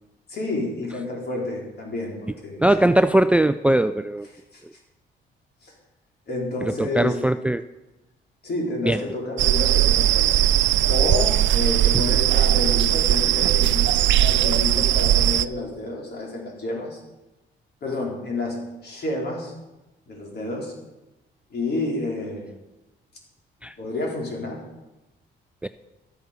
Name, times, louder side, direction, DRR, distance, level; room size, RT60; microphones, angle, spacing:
voice 1, 0.3-2.9 4.5-4.6 5.6-5.7 6.3-7.1 8.4-10.4 10.9-17.0 17.8-19.5 20.1-20.7 21.5-22.5 23.8-24.6, left 2 dB, 55° left, -1 dB, 4.5 m, -29 dB
voice 2, 2.6-4.3 4.6-4.7 6.6-7.6 8.9-9.0 23.6-23.7 25.6-25.7, right 1 dB, 5° right, 11 dB, 0.4 m, -20 dB
sound 1, 9.4-15.5, right 12 dB, 70° right, 0.5 m, -19 dB
12.5 x 8.9 x 6.8 m, 1.0 s
cardioid pair, 90°, 20 cm